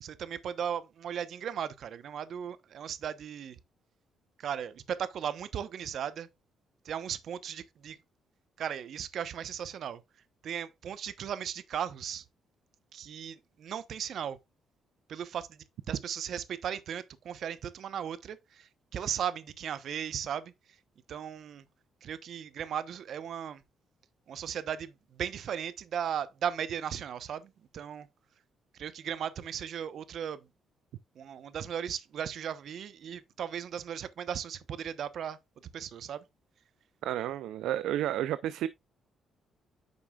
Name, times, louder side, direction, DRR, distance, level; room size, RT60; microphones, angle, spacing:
voice 1, 0.0-3.6 4.4-6.3 6.8-8.0 8.6-10.0 10.4-12.2 12.9-14.4 15.1-20.5 21.1-21.6 22.0-23.6 24.3-28.1 28.7-30.5 31.2-35.4 35.7-36.2, right 8 dB, 65° right, 0.9 m, -36 dB
voice 2, 37.0-38.7, right 12 dB, 85° right, 0.4 m, -31 dB
9.5 x 6.8 x 2.4 m
cardioid pair, 90°, 0 cm